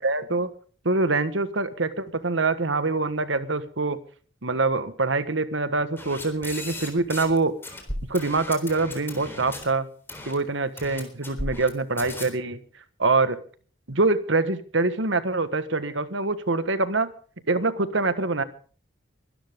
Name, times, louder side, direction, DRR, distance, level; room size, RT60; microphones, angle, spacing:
voice 1, 0.0-0.5 0.8-4.0 4.4-7.6 8.1-9.9 10.2-12.6 13.0-13.4 13.9-17.1 17.5-18.4, right 3 dB, 65° right, 13 dB, 1.5 m, -24 dB
sound 1, 6.0-7.4 7.6-9.6 10.1-10.3 10.8-11.7 12.0-12.2, left 1 dB, 10° left, 3.8 m, -36 dB
23.0 x 12.5 x 3.7 m, 0.42 s
head